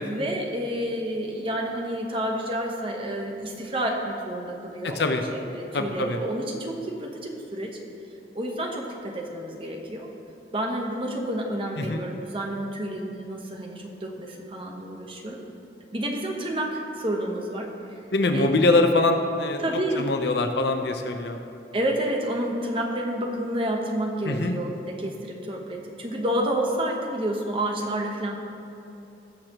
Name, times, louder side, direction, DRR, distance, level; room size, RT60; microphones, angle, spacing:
voice 1, 0.0-7.7 8.3-10.1 10.5-15.4 15.9-17.7 18.3-18.5 19.6-20.1 21.7-28.4, right 1 dB, 30° right, 1 dB, 1.0 m, -29 dB
voice 2, 4.8-5.2 5.7-6.2 11.8-12.0 18.1-21.4 24.2-24.6, left 2 dB, 70° left, 5 dB, 0.8 m, -23 dB
19.5 x 6.6 x 3.0 m, 2.9 s
head